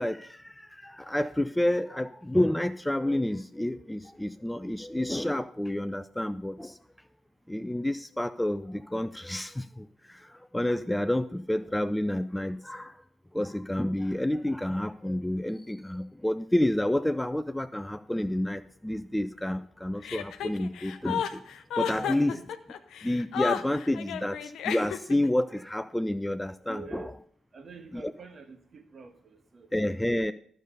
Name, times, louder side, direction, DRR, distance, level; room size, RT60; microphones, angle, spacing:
voice 1, 0.0-6.8 7.5-13.0 13.3-21.4 21.8-22.4 23.0-27.1 27.9-28.1 29.7-30.3, left 1 dB, 10° left, 0.4 m, -29 dB
Chuckle chortle, 20.0-25.3, left 9 dB, 65° left, 0.7 m, -33 dB
voice 2, 21.9-22.4 26.7-27.2 27.5-29.7, right 4 dB, 45° right, 1.4 m, -46 dB
12.0 x 6.7 x 5.3 m
hypercardioid pair, 40°, 0 cm